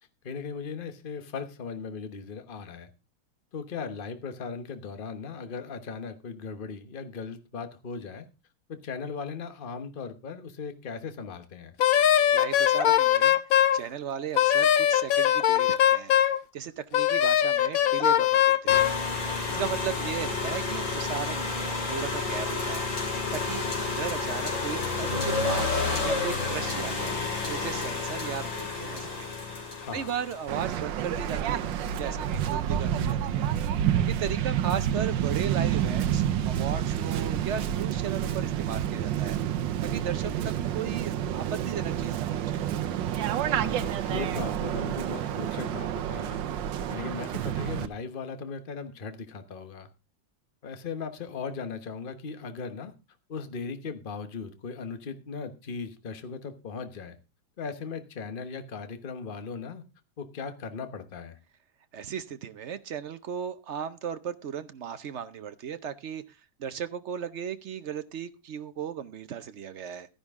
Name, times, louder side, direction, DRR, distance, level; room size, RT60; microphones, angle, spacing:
voice 1, 0.2-2.9 3.5-8.2 8.7-11.8 19.6-19.8 29.8-30.2 43.5-46.4 46.9-49.9 50.6-52.9 53.3-57.2 57.6-59.8 60.2-61.4, left 5 dB, 35° left, 9 dB, 1.1 m, -38 dB
Wind instrument woodwind instrument, 11.8-13.8 14.4-16.4 16.9-19.0, left 11 dB, 60° left, 1.0 m, -21 dB
voice 2, 12.3-13.4 13.7-16.2 16.5-18.9 19.5-22.9 23.3-25.7 26.0-27.1 27.5-29.3 29.9-31.7 32.0-33.5 34.1-39.4 39.8-42.6 61.9-66.2 66.6-70.1, right 8 dB, 60° right, 11 dB, 0.7 m, -36 dB
sound 1, 18.7-30.7, left 3 dB, 90° left, 3.6 m, -30 dB
Waves surf, 30.5-47.9, right 10 dB, 85° right, 1.5 m, -29 dB
13.0 x 10.5 x 3.6 m, 0.29 s
omnidirectional pair, 2.0 m